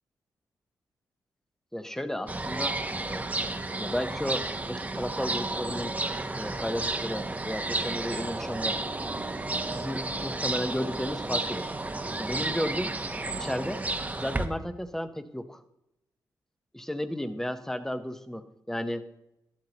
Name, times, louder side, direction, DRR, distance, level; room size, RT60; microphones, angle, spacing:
voice 1, 1.7-3.3 3.8-5.9 6.4-8.8 9.7-11.7 12.2-12.9 13.4-13.8 14.1-15.6 16.7-19.1, equal, 5° left, 10 dB, 0.9 m, -33 dB
sound 1, 2.3-14.5, right 2 dB, 20° right, 0.9 m, -32 dB
12.0 x 12.0 x 2.9 m, 0.86 s
cardioid pair, 75°, 8 cm